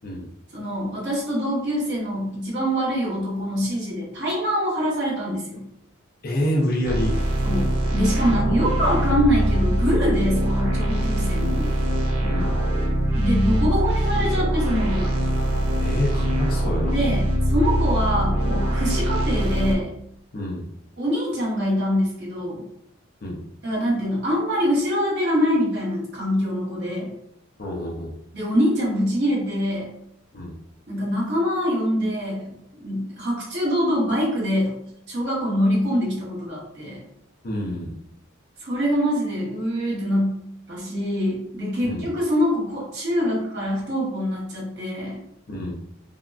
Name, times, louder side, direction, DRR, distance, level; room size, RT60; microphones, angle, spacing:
voice 1, 0.5-5.6 7.4-11.7 13.1-15.1 16.9-19.9 21.0-22.6 23.6-27.1 28.3-29.9 30.9-34.8 35.1-37.0 38.6-40.4 40.7-45.2, equal, 50° right, -4 dB, 1.1 m, -24 dB
voice 2, 6.2-7.2 8.2-8.5 12.2-12.6 15.8-17.0 20.3-20.7 23.2-23.4 27.6-28.1 30.3-30.5 37.4-37.9 41.8-42.1 45.5-45.7, equal, 45° left, -2 dB, 0.5 m, -27 dB
sound 1, 6.9-19.8, right 1 dB, 80° right, 0.6 m, -23 dB
3.5 x 2.2 x 2.4 m, 0.74 s
head